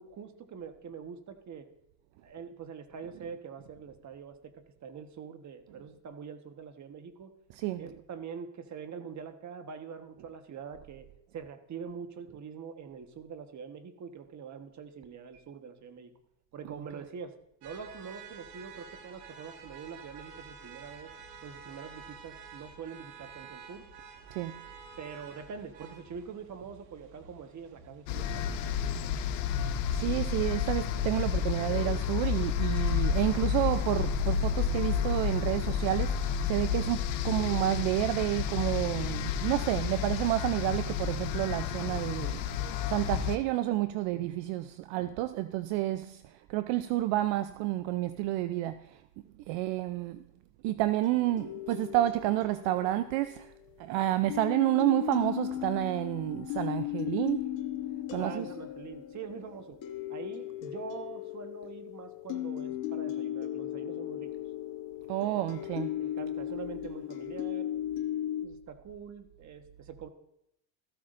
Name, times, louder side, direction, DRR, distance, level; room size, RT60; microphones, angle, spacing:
voice 1, 0.0-1.7 2.2-7.3 7.8-11.1 11.3-16.1 16.5-17.3 17.6-21.1 21.4-23.9 25.0-28.7 58.2-59.8 60.1-64.3 65.2-65.4 66.0-67.7 68.4-70.1, right 6 dB, 35° right, 1.3 m, -44 dB
voice 2, 7.5-7.9 24.3-24.6 29.9-42.4 42.9-49.0 49.5-50.2 50.6-53.5 53.8-57.5 58.1-58.5 65.1-65.9, right 15 dB, 65° right, 0.6 m, -30 dB
sound 1, 17.6-36.7, right 5 dB, 80° right, 2.0 m, -52 dB
sound 2, 28.1-43.4, left 8 dB, 85° left, 1.1 m, -30 dB
sound 3, 51.0-53.9 54.3-68.5, left 13 dB, 60° left, 1.3 m, -37 dB
14.5 x 13.0 x 2.6 m
supercardioid pair, 105°, 49 cm